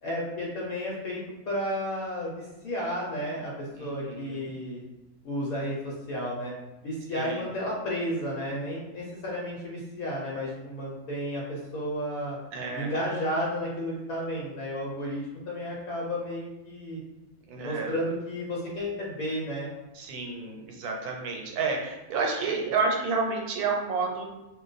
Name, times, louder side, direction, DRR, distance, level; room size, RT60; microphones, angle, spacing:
voice 1, 0.0-1.2 1.5-4.8 5.2-6.5 6.8-12.4 12.7-17.0 17.6-19.7, equal, 75° left, -4 dB, 1.1 m, -32 dB
voice 2, 3.8-4.5 7.1-7.5 12.5-12.9 17.5-17.9 19.9-24.3, right 4 dB, 80° right, 0 dB, 1.1 m, -30 dB
2.5 x 2.2 x 3.9 m, 1.0 s
omnidirectional pair, 1.6 m